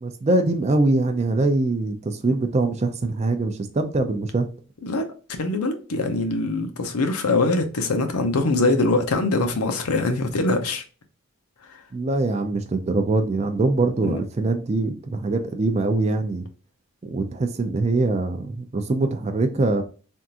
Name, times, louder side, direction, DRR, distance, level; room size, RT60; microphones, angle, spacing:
voice 1, 0.0-4.5 11.9-16.5 17.0-19.8, right 2 dB, 30° right, 0.4 m, -23 dB
voice 2, 4.8-10.8 14.0-14.2, left 2 dB, 85° left, 0.6 m, -23 dB
3.5 x 2.5 x 2.7 m
head